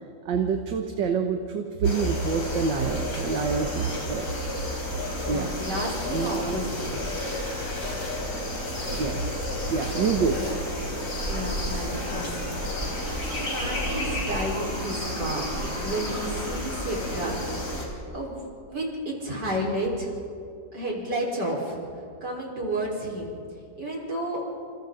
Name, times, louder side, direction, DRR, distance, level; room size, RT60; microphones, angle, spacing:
voice 1, 0.3-4.3 5.3-5.5 6.1-6.6 8.9-10.4, right 5 dB, 85° right, 4 dB, 1.9 m, -27 dB
sound 1, 1.8-17.9, left 1 dB, 55° left, 4.5 m, -32 dB
voice 2, 5.2-7.1 10.3-10.5 11.3-12.4 13.3-15.5 15.8-17.5 18.1-18.4 18.7-20.2 20.7-21.8 22.2-23.3 23.8-24.4, right 1 dB, 70° right, -2 dB, 5.2 m, -31 dB
sound 2, 9.5-16.7, right 1 dB, 35° right, 2.6 m, -37 dB
28.5 x 28.5 x 3.9 m, 2.4 s
omnidirectional pair, 1.9 m